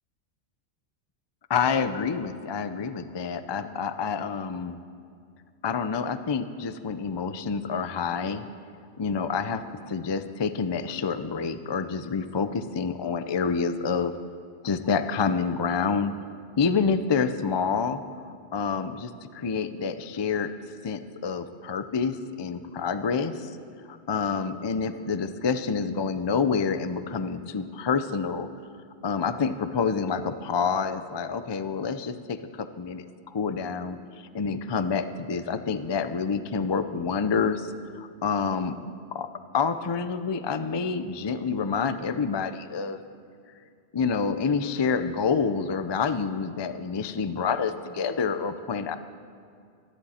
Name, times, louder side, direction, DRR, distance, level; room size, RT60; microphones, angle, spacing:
voice 1, 1.5-4.8 5.6-8.5 9.0-14.1 14.6-16.1 16.6-18.0 18.5-20.5 20.8-23.6 23.9-28.5 29.0-34.0 34.3-38.8 39.1-39.3 39.5-43.0 43.9-49.0, left 5 dB, 35° left, 11 dB, 0.4 m, -28 dB
26.0 x 11.5 x 4.3 m, 2.3 s
omnidirectional pair, 1.2 m